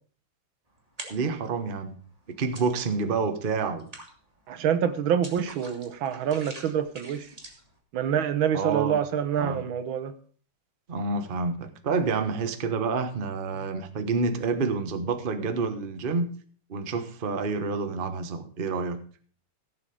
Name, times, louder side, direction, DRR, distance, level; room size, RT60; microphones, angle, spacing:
sound 1, 0.8-1.5 1.9-3.1 3.5-7.8, right 1 dB, 20° right, 2.2 m, -45 dB
voice 1, 1.1-2.0 2.4-3.9 8.5-9.0 9.4-9.6 10.9-16.3 16.7-19.0, right 4 dB, 35° right, 1.0 m, -28 dB
voice 2, 4.5-7.3 7.9-10.1, right 8 dB, 75° right, 1.7 m, -26 dB
16.5 x 7.4 x 5.1 m
omnidirectional pair, 2.2 m